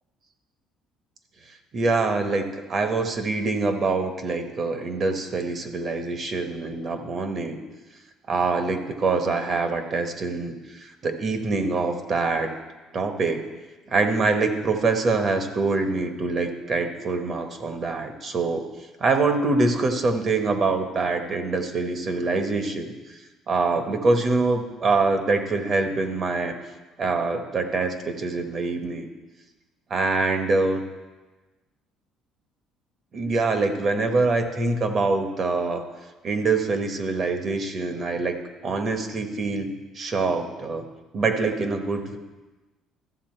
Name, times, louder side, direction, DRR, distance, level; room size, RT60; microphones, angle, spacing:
voice 1, 1.7-7.6 8.3-12.5 12.9-13.5 13.9-18.7 19.0-22.9 23.5-26.5 27.0-29.1 29.9-30.8 33.1-35.9 36.2-40.8 41.1-42.2, right 3 dB, 40° right, 6 dB, 1.1 m, -25 dB
13.5 x 7.1 x 4.4 m, 1.2 s
cardioid pair, 135°, 0 cm